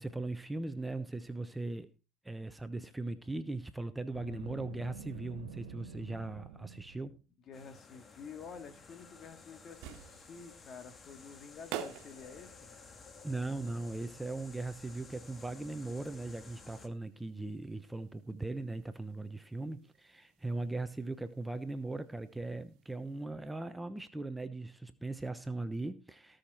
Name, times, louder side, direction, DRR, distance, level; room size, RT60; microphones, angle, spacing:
voice 1, 0.0-1.9 2.2-7.2 13.2-26.4, right 2 dB, 10° right, 1.0 m, -39 dB
Boom, 4.1-7.2, right 5 dB, 80° right, 1.6 m, -48 dB
voice 2, 7.5-12.7, left 5 dB, 40° left, 2.4 m, -50 dB
sound 1, 7.5-16.9, left 4 dB, 25° left, 2.1 m, -54 dB
sound 2, 9.5-23.2, right 10 dB, 60° right, 1.5 m, -52 dB
18.0 x 6.5 x 4.4 m
hypercardioid pair, 75°, 0 cm